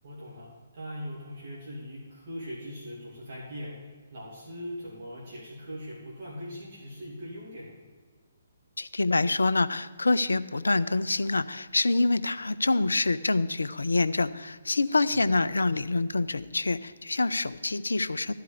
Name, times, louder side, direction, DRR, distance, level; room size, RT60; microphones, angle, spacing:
voice 1, 0.0-3.7 4.1-7.7 15.1-15.4, equal, 45° right, -5 dB, 2.5 m, -40 dB
voice 2, 8.8-18.3, left 3 dB, 70° left, 14 dB, 0.4 m, -26 dB
12.5 x 4.7 x 8.2 m, 1.5 s
figure-of-eight pair, 130°, 0 cm